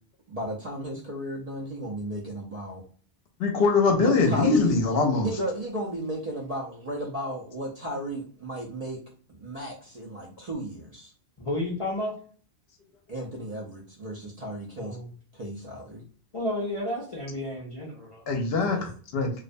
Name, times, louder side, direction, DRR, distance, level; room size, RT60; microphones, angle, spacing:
voice 1, 0.3-2.8 3.9-4.7 5.2-9.0 9.4-11.1 13.1-15.0 15.3-16.0 18.6-18.9, right 1 dB, 50° right, -3 dB, 0.5 m, -34 dB
voice 2, 3.4-5.3 18.3-18.8 19.1-19.3, left 4 dB, 70° left, 3 dB, 0.8 m, -22 dB
voice 3, 11.4-12.1 14.8-15.1 16.3-18.2, left 1 dB, 45° left, -4 dB, 0.4 m, -31 dB
2.4 x 2.1 x 2.5 m, 0.43 s
omnidirectional pair, 1.1 m